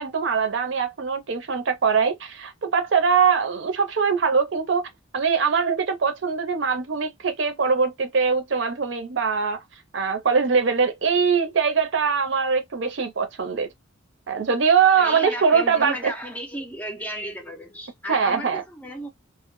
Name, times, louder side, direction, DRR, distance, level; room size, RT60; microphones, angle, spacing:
voice 1, 0.0-9.6 9.9-13.7 14.3-16.1 18.1-18.6, right 6 dB, 65° right, 0.6 m, -22 dB
voice 2, 15.0-19.1, right 1 dB, 10° left, 0.4 m, -34 dB
2.1 x 2.0 x 3.0 m
head